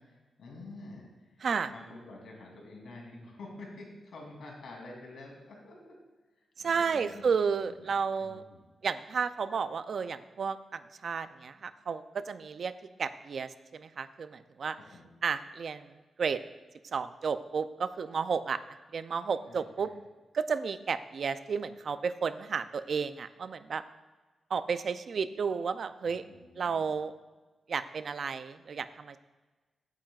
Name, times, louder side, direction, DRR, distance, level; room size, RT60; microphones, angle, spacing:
voice 1, 0.1-1.1 1.4-6.0 6.6-7.3 7.6-8.6 14.7-15.1 19.5-19.9 26.0-26.9, left 2 dB, 80° left, 0 dB, 2.9 m, -48 dB
voice 2, 1.4-1.7 6.6-8.4 8.8-12.7 13.0-14.8 15.2-16.4 16.9-18.6 18.9-19.9 20.3-23.8 24.5-26.2 26.6-27.1 27.7-29.2, right 5 dB, 55° right, 12 dB, 0.4 m, -32 dB
15.5 x 8.8 x 2.4 m, 1.2 s
wide cardioid pair, 130°, 0 cm